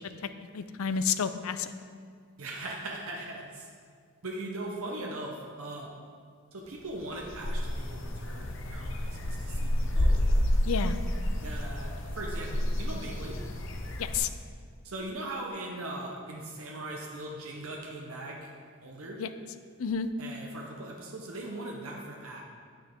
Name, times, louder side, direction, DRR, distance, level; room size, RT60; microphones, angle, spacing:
voice 1, 0.5-1.7 10.6-10.9 14.0-14.3 19.2-19.3 19.8-20.1, left 7 dB, 75° left, 11 dB, 0.5 m, -30 dB
voice 2, 2.4-3.7 4.2-5.9 6.5-10.2 11.4-13.4 14.8-18.5 18.8-19.2 20.2-22.4, right 2 dB, 75° right, -1 dB, 1.0 m, -40 dB
sound 1, 6.9-14.2, left 1 dB, 60° left, 0.8 m, -30 dB
9.3 x 9.1 x 3.7 m, 2.1 s
head